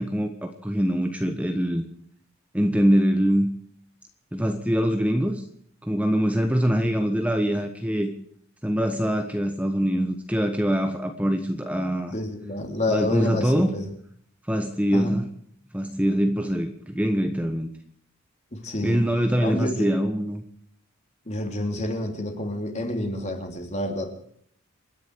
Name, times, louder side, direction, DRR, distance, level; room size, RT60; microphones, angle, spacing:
voice 1, 0.0-1.8 2.5-3.5 4.3-5.4 5.8-8.1 8.6-12.2 12.9-13.7 14.5-15.3 15.7-17.7 18.8-20.4, equal, 5° right, 5 dB, 1.2 m, -23 dB
voice 2, 12.1-13.8 14.9-15.1 18.5-19.0 19.4-19.9 21.3-24.1, left 1 dB, 35° left, 4 dB, 3.3 m, -28 dB
28.5 x 10.5 x 4.7 m, 0.65 s
head